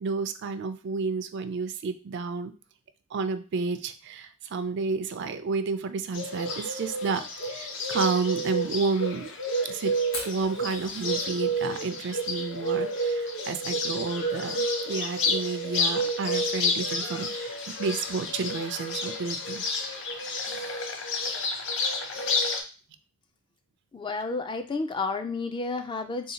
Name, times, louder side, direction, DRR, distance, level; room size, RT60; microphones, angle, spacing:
voice 1, 0.0-2.5 3.1-9.3 9.6-9.9 10.2-19.6 20.5-20.8 22.2-22.3, right 4 dB, 55° right, 9 dB, 0.4 m, -31 dB
Bird, 6.1-22.6, equal, 65° left, 0.6 m, -30 dB
Fire, 10.1-19.8, left 2 dB, 80° left, 1.2 m, -47 dB
voice 2, 23.9-26.3, left 3 dB, 25° left, 7 dB, 0.3 m, -31 dB
3.6 x 2.7 x 2.7 m, 0.34 s
head